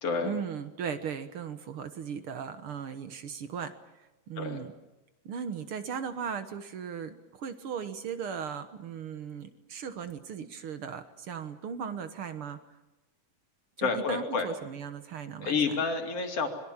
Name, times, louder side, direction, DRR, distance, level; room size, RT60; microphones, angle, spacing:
voice 1, 0.2-3.7 4.3-4.7 5.2-12.6 13.8-15.8, right 7 dB, 55° right, 9 dB, 1.6 m, -37 dB
voice 2, 13.8-14.5 15.4-16.5, left 4 dB, 50° left, 4 dB, 3.4 m, -29 dB
26.0 x 22.5 x 7.3 m, 1.0 s
omnidirectional pair, 3.8 m